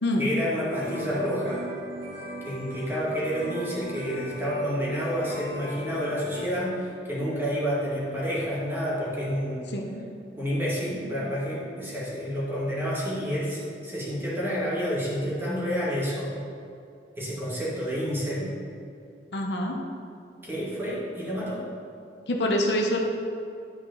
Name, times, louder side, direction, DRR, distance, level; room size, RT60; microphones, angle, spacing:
voice 1, 0.2-1.6 2.4-9.7 10.4-16.4 17.2-18.5 20.4-21.7, equal, 15° right, -7 dB, 2.0 m, -29 dB
sound 1, 0.7-6.4, equal, 85° right, 2.0 m, -38 dB
voice 2, 9.7-10.1 19.3-19.8 22.3-23.0, left 1 dB, 75° left, 1 dB, 0.9 m, -26 dB
10.5 x 4.8 x 4.0 m, 2.6 s
head